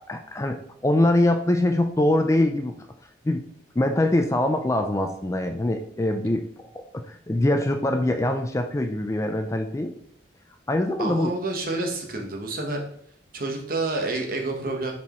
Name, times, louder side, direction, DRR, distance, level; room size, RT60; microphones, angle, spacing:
voice 1, 0.1-2.7 3.2-3.4 3.8-6.5 6.7-9.9 10.7-11.3, left 1 dB, 15° left, 6 dB, 0.3 m, -23 dB
voice 2, 11.0-12.8 13.3-14.9, right 2 dB, 50° right, 2 dB, 1.1 m, -28 dB
7.1 x 4.5 x 3.0 m, 0.65 s
head